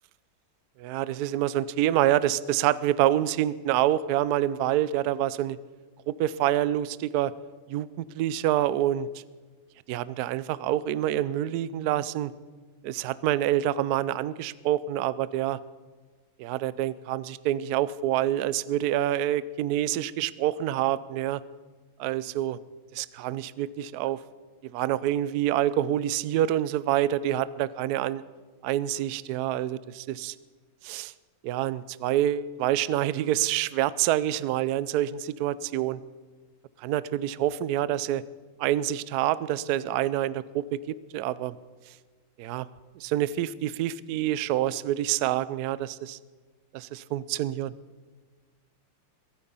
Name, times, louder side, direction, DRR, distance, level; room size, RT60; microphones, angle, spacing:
voice 1, 0.8-5.6 6.1-7.3 7.7-9.1 9.9-12.3 12.8-15.6 16.4-21.4 22.0-22.6 23.0-24.2 24.7-28.2 28.6-30.3 30.8-31.1 31.4-36.0 36.8-38.2 38.6-41.5 42.4-42.7 43.0-46.2 46.7-47.7, right 12 dB, 75° right, 18 dB, 0.9 m, -27 dB
23.0 x 8.6 x 5.5 m, 1.4 s
omnidirectional pair, 2.1 m